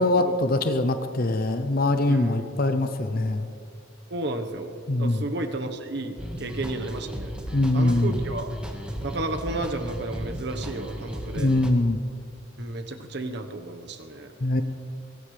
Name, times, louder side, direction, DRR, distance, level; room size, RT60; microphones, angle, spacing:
voice 1, 0.0-3.5 4.9-5.2 7.5-8.1 11.3-12.0 14.4-14.6, left 2 dB, 50° left, 8 dB, 0.7 m, -23 dB
voice 2, 2.1-2.5 4.1-7.3 7.7-8.6 9.0-11.5 12.6-14.3, right 2 dB, 60° right, 6 dB, 1.2 m, -32 dB
sound 1, 6.2-11.7, equal, 5° right, 1.6 m, -35 dB
22.5 x 17.5 x 3.4 m, 2.4 s
head